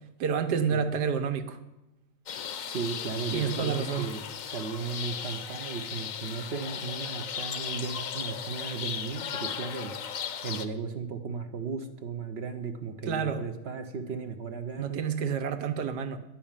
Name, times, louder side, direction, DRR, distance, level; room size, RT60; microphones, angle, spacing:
voice 1, 0.2-1.6 3.3-4.1 13.1-13.4 14.8-16.2, right 6 dB, 80° right, 7 dB, 1.4 m, -29 dB
sound 1, 2.3-10.7, left 8 dB, 60° left, 1.0 m, -36 dB
voice 2, 2.7-10.0 10.4-15.0, right 5 dB, 55° right, 8 dB, 0.7 m, -36 dB
10.5 x 5.7 x 8.7 m, 0.95 s
omnidirectional pair, 1.8 m